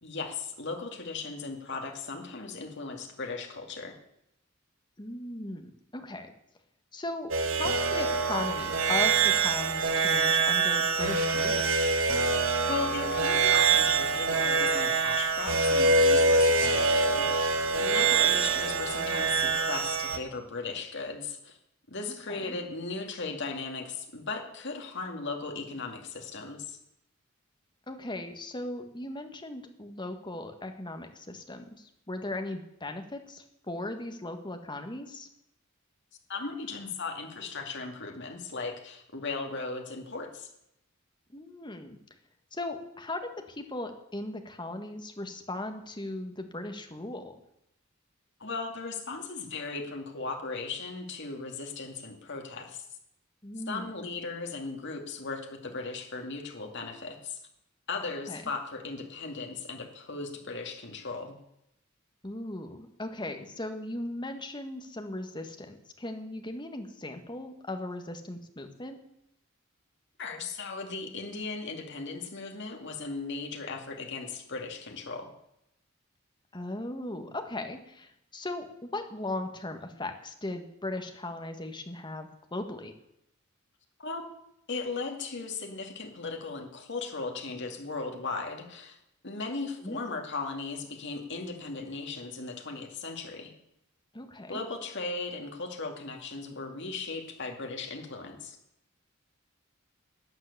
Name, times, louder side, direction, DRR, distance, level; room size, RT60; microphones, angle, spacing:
voice 1, 0.0-4.0 12.7-21.6 21.9-26.8 36.3-40.5 48.4-52.8 53.7-57.4 57.9-61.4 70.2-75.3 84.0-84.3 84.7-89.0 89.2-93.5 94.5-98.6, left 4 dB, 60° left, 3 dB, 2.4 m, -37 dB
voice 2, 5.0-6.3 6.9-11.7 22.1-22.6 27.9-35.3 41.3-42.0 42.5-47.3 53.4-53.9 58.3-58.4 62.2-69.0 76.5-82.9 89.8-90.0 94.1-94.6, left 2 dB, 20° left, 6 dB, 1.7 m, -38 dB
sound 1, 7.3-20.2, right 4 dB, 75° right, 1.5 m, -25 dB
12.0 x 9.6 x 8.4 m, 0.80 s
head